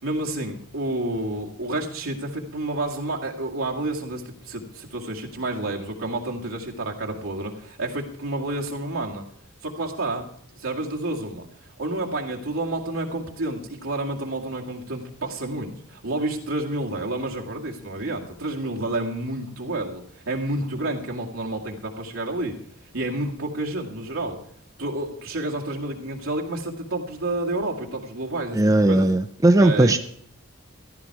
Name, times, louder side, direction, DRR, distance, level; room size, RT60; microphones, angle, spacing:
voice 1, 0.0-9.2 9.6-10.3 10.6-11.5 11.8-22.6 22.9-24.4 24.8-29.1 29.6-30.0, right 2 dB, 75° right, -1 dB, 2.1 m, -29 dB
voice 2, 28.5-30.0, right 1 dB, 15° right, 7 dB, 0.4 m, -17 dB
14.0 x 11.5 x 4.7 m, 0.64 s
head